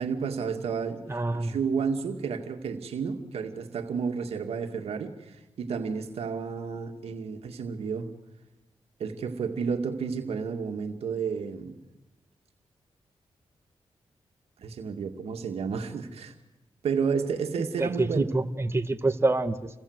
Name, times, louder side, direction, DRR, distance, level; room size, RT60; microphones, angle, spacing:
voice 1, 0.0-1.0 1.3-8.1 9.0-11.8 14.6-16.3 16.8-18.2, right 6 dB, 85° right, 5 dB, 2.3 m, -31 dB
voice 2, 1.1-1.5 17.8-19.7, right 2 dB, 25° right, 7 dB, 1.7 m, -26 dB
29.0 x 23.0 x 8.2 m, 1.0 s
cardioid pair, 60°, 10 cm